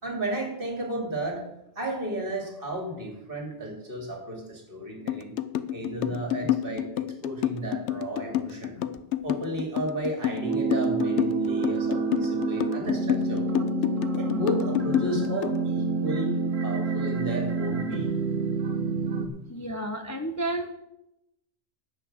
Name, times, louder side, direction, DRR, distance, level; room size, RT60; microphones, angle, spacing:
voice 1, 0.0-1.5 1.8-5.4 5.7-8.8 9.2-13.5 14.2-18.1, right 1 dB, 45° right, 1 dB, 2.8 m, -33 dB
sound 1, 5.1-15.6, left 12 dB, 70° left, 0.9 m, -28 dB
sound 2, 10.4-19.3, right 3 dB, 75° right, 1.7 m, -28 dB
voice 2, 19.5-20.7, right 1 dB, 15° left, 5 dB, 0.7 m, -31 dB
10.0 x 8.3 x 6.8 m, 0.87 s
omnidirectional pair, 1.3 m